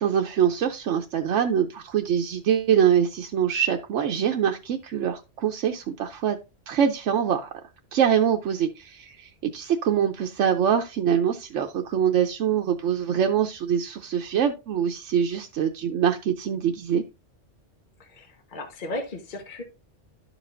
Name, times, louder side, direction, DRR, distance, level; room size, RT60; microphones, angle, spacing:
voice 1, 0.0-6.4 6.7-7.5 7.9-17.0, right 8 dB, 85° right, 3 dB, 1.0 m, -24 dB
voice 2, 18.0-19.6, left 1 dB, 45° left, 3 dB, 1.3 m, -35 dB
12.0 x 5.0 x 2.5 m, 0.27 s
omnidirectional pair, 1.2 m